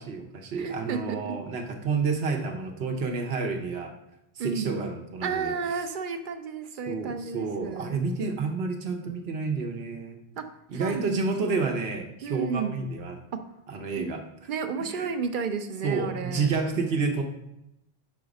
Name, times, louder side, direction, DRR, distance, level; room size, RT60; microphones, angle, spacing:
voice 1, 0.0-3.9 4.4-5.5 6.9-10.2 10.7-13.2 13.7-14.2 14.8-15.1 15.8-17.2, right 4 dB, 75° right, 3 dB, 1.0 m, -30 dB
voice 2, 0.6-1.4 4.4-4.9 5.2-8.0 10.4-10.5 10.7-11.3 12.2-12.8 14.0-14.1 14.5-16.5, right 5 dB, 60° right, 8 dB, 0.6 m, -32 dB
4.8 x 4.1 x 5.1 m, 0.87 s
omnidirectional pair, 1.0 m